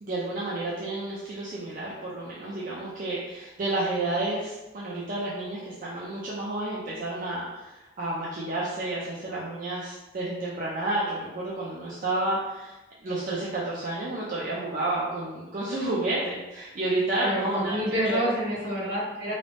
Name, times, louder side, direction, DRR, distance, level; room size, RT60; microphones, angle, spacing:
voice 1, 0.0-12.7 13.0-18.2, right 2 dB, 45° right, -6 dB, 0.4 m, -30 dB
voice 2, 17.2-19.4, equal, 70° right, -8 dB, 1.3 m, -28 dB
2.6 x 2.0 x 3.2 m, 1.0 s
head